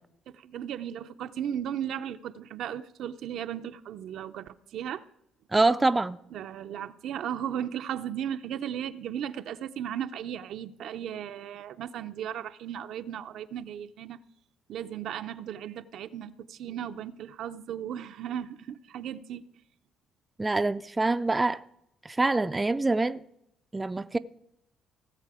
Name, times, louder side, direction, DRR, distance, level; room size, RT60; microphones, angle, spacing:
voice 1, 0.3-5.0 6.3-14.2 14.7-19.5, right 9 dB, 70° right, 0.5 m, -36 dB
voice 2, 5.5-6.2 20.4-21.6 22.1-23.2 23.7-24.2, right 2 dB, 20° right, 0.4 m, -25 dB
17.5 x 7.5 x 4.8 m
cardioid pair, 85°, 0 cm